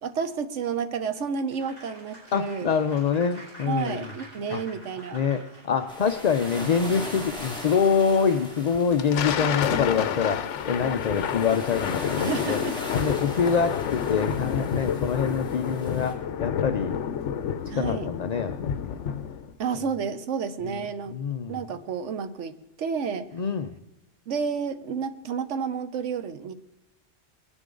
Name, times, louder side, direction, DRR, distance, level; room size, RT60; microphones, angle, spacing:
voice 1, 0.0-2.7 3.7-5.2 12.3-12.8 17.7-18.1 19.6-21.2 21.5-23.3 24.3-26.5, right 6 dB, 75° right, 10 dB, 1.2 m, -30 dB
Applause, 1.5-7.1, right 1 dB, 50° right, 6.3 m, -47 dB
voice 2, 2.3-4.1 4.5-4.6 5.1-12.6 12.9-17.0 17.7-19.0 21.1-21.6 23.3-23.7, left 6 dB, 50° left, 7 dB, 0.5 m, -25 dB
sound 1, 5.9-16.1, left 1 dB, 5° left, 2.3 m, -39 dB
Thunder, 8.8-19.5, left 8 dB, 80° left, 1.0 m, -29 dB
21.0 x 9.8 x 3.8 m, 0.91 s
omnidirectional pair, 1.2 m